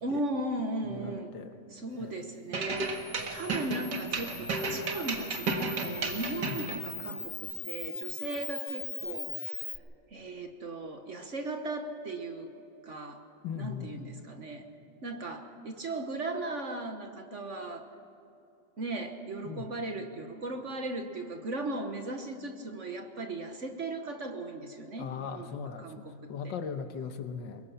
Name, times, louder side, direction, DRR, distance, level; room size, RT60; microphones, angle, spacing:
voice 1, 0.0-1.4 1.7-2.9 3.3-9.7 10.1-12.5 12.8-13.2 13.6-14.7 15.0-17.9 18.8-26.5, right 2 dB, 45° right, 5 dB, 1.4 m, -37 dB
voice 2, 0.9-1.5 2.0-2.2 6.4-6.6 13.4-14.0 19.4-19.7 25.0-26.0 26.3-27.6, left 6 dB, 70° left, 8 dB, 1.7 m, -38 dB
sound 1, 2.5-6.8, right 3 dB, 60° right, 2.2 m, -33 dB
Camera, 2.8-9.8, left 4 dB, 25° left, 0.9 m, -40 dB
23.5 x 21.0 x 5.7 m, 2.8 s
omnidirectional pair, 2.0 m